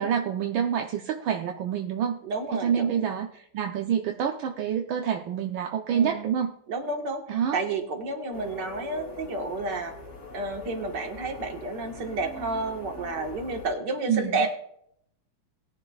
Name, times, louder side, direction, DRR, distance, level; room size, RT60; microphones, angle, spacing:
voice 1, 0.0-2.2 2.6-6.5 7.3-7.6 14.1-14.4, right 8 dB, 80° right, 3 dB, 1.6 m, -27 dB
voice 2, 2.2-3.0 5.9-6.3 6.7-9.9 10.3-14.5, right 3 dB, 60° right, 3 dB, 2.1 m, -31 dB
sound 1, 8.3-13.7, left 2 dB, 45° left, 3.0 m, -42 dB
20.0 x 10.5 x 2.4 m, 0.70 s
omnidirectional pair, 2.1 m